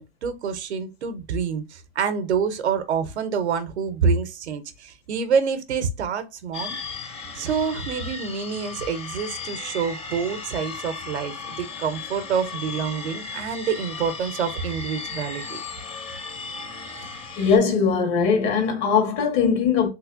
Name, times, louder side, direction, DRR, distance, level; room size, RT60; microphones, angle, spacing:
voice 1, 0.0-6.8 7.3-15.6, right 6 dB, 90° right, 0.8 m, -27 dB
sound 1, 6.5-17.6, left 4 dB, 20° left, 0.8 m, -36 dB
voice 2, 17.4-19.9, left 6 dB, 50° left, 1.6 m, -20 dB
3.2 x 3.1 x 2.4 m
hypercardioid pair, 100°, 32 cm